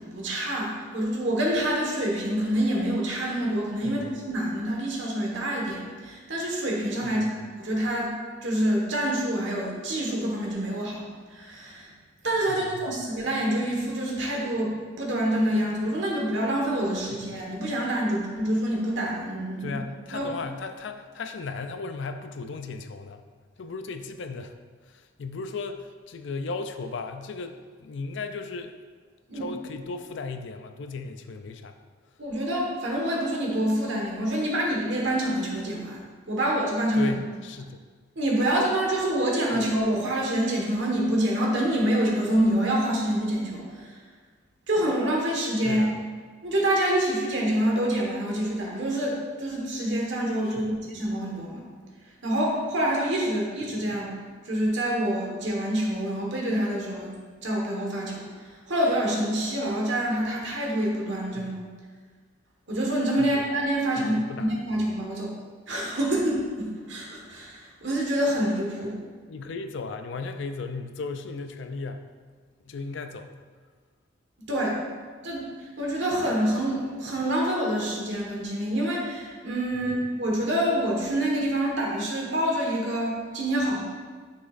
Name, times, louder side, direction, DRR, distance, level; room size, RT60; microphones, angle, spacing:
voice 1, 0.0-8.1 8.4-11.0 11.3-11.9 12.2-19.8 20.1-20.2 29.3-29.4 32.2-36.0 36.3-37.1 38.1-43.9 44.7-46.0 46.4-51.6 52.2-54.1 54.4-57.1 57.4-58.2 58.7-61.5 62.7-65.3 65.7-69.0 74.5-74.8 75.2-83.8, right 1 dB, 60° right, -2 dB, 1.6 m, -26 dB
voice 2, 7.0-7.4 12.5-12.9 17.1-17.4 19.6-23.2 23.6-24.5 24.9-28.8 29.3-31.8 36.9-37.8 39.5-39.8 45.6-46.0 50.4-50.8 61.3-61.5 63.2-63.4 64.0-64.6 69.3-72.1 72.7-73.3 79.7-79.9, left 4 dB, 60° left, 7 dB, 0.4 m, -36 dB
9.6 x 5.8 x 2.6 m, 1.6 s
head